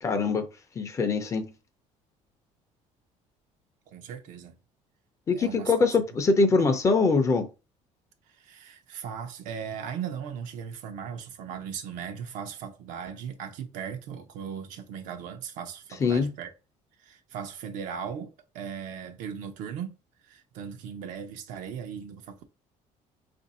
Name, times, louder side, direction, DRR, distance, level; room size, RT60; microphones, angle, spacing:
voice 1, 0.0-0.5 0.8-1.5 5.3-7.5 16.0-16.3, left 4 dB, 25° left, 0.5 m, -23 dB
voice 2, 3.9-4.5 5.3-5.7 6.5-6.8 8.3-16.5 17.0-20.0 20.2-22.5, right 7 dB, 75° right, 0.7 m, -38 dB
4.4 x 2.6 x 4.1 m
cardioid pair, 170°, 13 cm